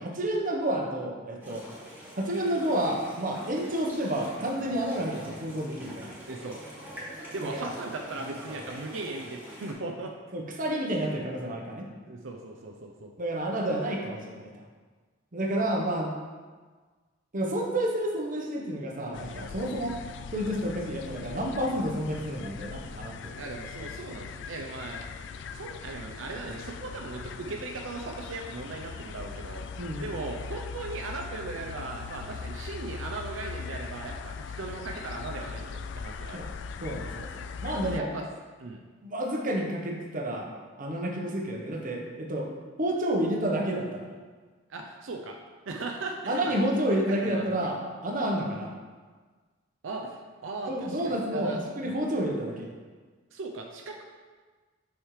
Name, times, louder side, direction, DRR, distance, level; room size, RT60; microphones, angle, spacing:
voice 1, 0.0-1.6 2.2-6.1 7.4-7.7 10.3-11.9 13.2-14.5 15.3-16.1 17.3-20.0 20.3-23.4 29.8-30.1 36.3-36.5 36.8-38.1 39.0-40.5 40.8-42.5 42.8-44.1 46.3-48.7 50.7-51.5 51.8-52.7, right 1 dB, 45° right, 0 dB, 1.0 m, -30 dB
sound 1, 1.4-9.7, equal, 10° right, 1.7 m, -45 dB
voice 2, 6.3-6.6 7.2-10.1 10.9-11.1 12.1-13.1 23.4-25.0 25.5-29.7 30.0-36.5 37.9-38.3 38.6-38.8 44.7-45.4 45.7-47.7 49.8-51.6 53.3-54.0, right 3 dB, 85° right, 1 dB, 0.6 m, -38 dB
sound 2, 19.1-38.0, left 5 dB, 65° left, 0.3 m, -40 dB
6.4 x 6.3 x 3.2 m, 1.4 s
head